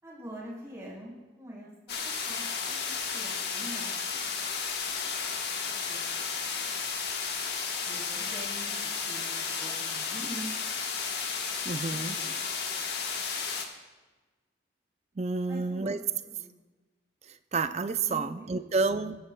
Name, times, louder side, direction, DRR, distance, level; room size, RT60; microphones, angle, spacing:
voice 1, 0.0-1.7 2.2-4.0 5.9-6.5 7.9-10.5 11.9-12.4 15.5-15.9 16.2-16.4 18.0-18.6 19.0-19.1, equal, 15° right, -6 dB, 3.6 m, -44 dB
sound 1, 1.9-13.6, left 5 dB, 60° left, 1.2 m, -33 dB
voice 2, 11.6-12.2 15.2-16.0 17.2-19.2, right 4 dB, 35° right, 11 dB, 0.4 m, -30 dB
22.0 x 10.5 x 2.2 m, 1.2 s
head